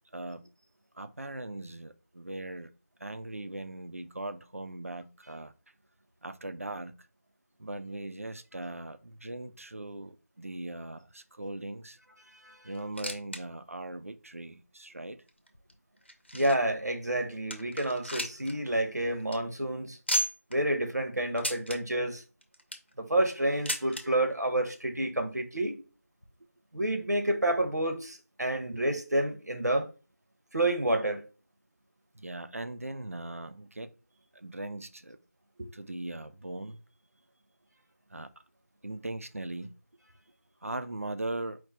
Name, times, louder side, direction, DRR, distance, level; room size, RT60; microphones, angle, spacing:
voice 1, 0.1-0.5 0.9-2.7 3.0-5.5 6.2-6.9 7.6-12.0 12.6-15.2 32.1-33.9 34.3-35.2 35.7-36.8 38.1-38.3 38.8-39.8 40.6-41.6, right 2 dB, 60° right, 0.5 m, -39 dB
sound 1, 12.7-13.4 13.7-13.8 14.5-14.6 15.3-16.8 17.2-17.3 17.5-18.5 18.8-18.9 19.2-19.4 20.1-20.6 21.4-21.8 22.4-22.9 23.7-24.0 25.0-25.1 25.3-25.4 26.2-26.3, equal, 40° left, 0.8 m, -34 dB
voice 2, 16.3-20.0 20.5-22.2 23.0-25.8 26.7-29.9 30.5-31.2 35.6-35.7, right 1 dB, 85° right, 1.1 m, -29 dB
4.5 x 2.4 x 4.3 m
figure-of-eight pair, 180°, 9 cm